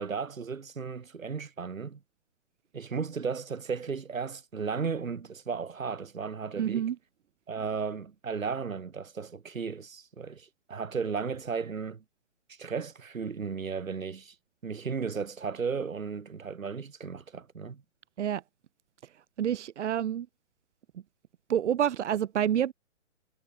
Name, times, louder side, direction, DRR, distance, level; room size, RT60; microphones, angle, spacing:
voice 1, 0.0-2.0 2.7-6.9 7.5-12.0 12.5-14.3 14.6-17.8, right 5 dB, 85° right, 4.5 m, -35 dB
voice 2, 6.6-7.0 18.2-18.4 19.4-20.3 21.5-22.7, right 9 dB, 60° right, 2.0 m, -28 dB
hypercardioid pair, 140°, 39 cm